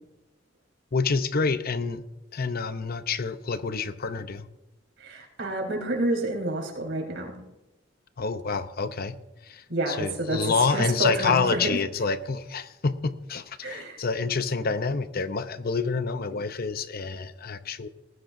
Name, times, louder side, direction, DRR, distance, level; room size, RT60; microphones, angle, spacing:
voice 1, 0.9-2.1 2.3-4.4 8.2-9.2 9.4-17.9, left 4 dB, 50° left, 11 dB, 0.7 m, -28 dB
voice 2, 5.0-7.4 9.7-11.8 13.6-14.0, right 1 dB, 75° right, -1 dB, 4.4 m, -29 dB
19.5 x 15.0 x 2.7 m, 1.0 s
head